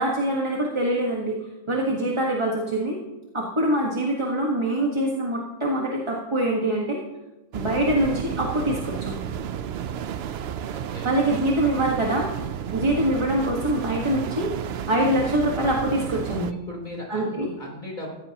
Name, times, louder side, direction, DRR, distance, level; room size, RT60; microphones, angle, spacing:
voice 1, 0.0-1.4 1.7-3.0 3.3-7.0 7.5-9.1 11.0-12.3 12.7-16.5 17.1-17.5, right 1 dB, 20° right, -2 dB, 1.4 m, -24 dB
sound 1, 7.5-16.5, right 9 dB, 60° right, 0.7 m, -32 dB
voice 2, 7.6-7.9 10.7-11.2 12.6-12.9 16.1-18.1, left 1 dB, 30° left, -1 dB, 3.6 m, -40 dB
16.0 x 14.5 x 2.9 m, 1.1 s
omnidirectional pair, 1.5 m